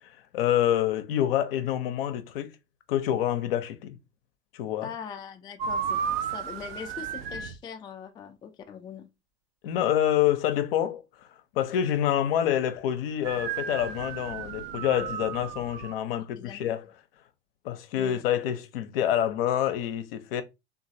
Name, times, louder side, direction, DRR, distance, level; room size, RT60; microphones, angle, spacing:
voice 1, 0.3-2.5 2.9-4.0 4.5-4.9 9.6-11.0 11.5-16.9 17.6-20.4, left 11 dB, 65° left, 0.6 m, -27 dB
voice 2, 4.8-9.1 16.4-16.7 17.9-18.2, left 7 dB, 15° left, 0.3 m, -42 dB
sound 1, 5.6-7.6 13.2-15.9, right 7 dB, 65° right, 0.5 m, -33 dB
3.0 x 2.5 x 2.6 m
figure-of-eight pair, 75°, 32 cm